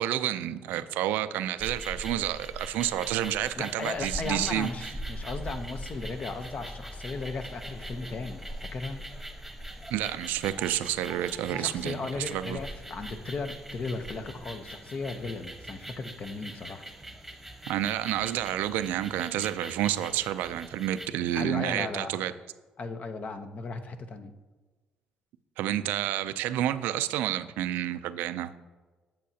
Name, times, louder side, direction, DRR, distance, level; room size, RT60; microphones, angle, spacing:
voice 1, 0.0-4.9 9.9-12.6 17.7-22.3 25.6-28.5, right 12 dB, 90° right, 12 dB, 0.4 m, -29 dB
sound 1, 1.6-21.1, right 1 dB, 5° right, 1.1 m, -42 dB
voice 2, 3.6-8.4 8.7-9.0 11.5-16.8 21.3-22.2 22.8-24.3, left 3 dB, 45° left, 8 dB, 0.8 m, -36 dB
8.7 x 7.4 x 2.8 m, 1.3 s
cardioid pair, 85°, 3 cm